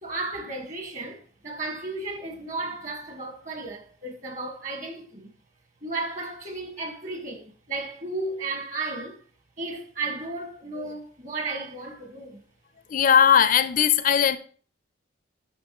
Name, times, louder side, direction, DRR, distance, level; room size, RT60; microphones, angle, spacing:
voice 1, 0.0-5.3 5.8-9.2 9.6-12.4, right 3 dB, 40° right, 1.7 m, -34 dB
voice 2, 12.9-14.4, left 8 dB, 45° left, 0.4 m, -19 dB
10.0 x 6.4 x 3.0 m
head